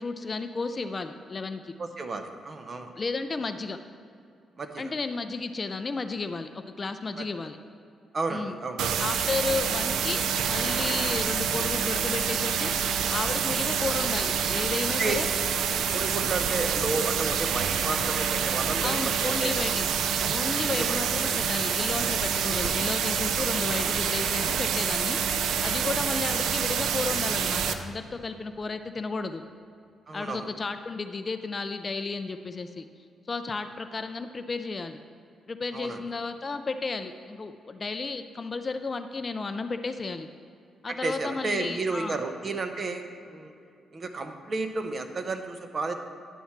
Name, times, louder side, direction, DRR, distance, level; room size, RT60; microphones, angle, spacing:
voice 1, 0.0-1.7 3.0-3.8 4.8-7.6 8.3-8.6 9.0-12.7 13.1-15.3 18.8-19.9 20.3-29.4 30.1-32.9 33.3-35.0 35.5-40.3 40.8-42.2, left 4 dB, 30° left, 9 dB, 0.3 m, -33 dB
voice 2, 1.8-2.9 4.6-4.9 7.2-7.3 8.1-8.8 13.3-13.6 15.0-15.1 15.9-19.5 20.7-21.0 23.4-23.5 25.8-26.0 30.1-30.5 35.7-36.0 40.9-43.5 43.9-45.9, right 3 dB, 35° right, 6 dB, 0.7 m, -32 dB
sound 1, 8.8-27.7, right 7 dB, 90° right, 0.4 m, -27 dB
10.0 x 4.3 x 5.8 m, 2.5 s
cardioid pair, 135°, 0 cm